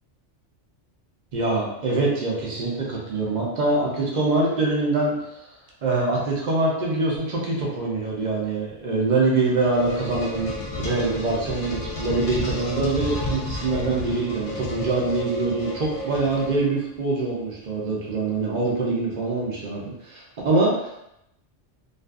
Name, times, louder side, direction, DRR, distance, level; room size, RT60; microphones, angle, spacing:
voice 1, 1.3-5.2 5.8-10.5 10.8-21.0, right 3 dB, 45° right, -3 dB, 0.7 m, -24 dB
sound 1, 9.2-16.9, left 2 dB, 60° left, 0.8 m, -32 dB
2.5 x 2.3 x 2.3 m, 0.82 s
omnidirectional pair, 1.2 m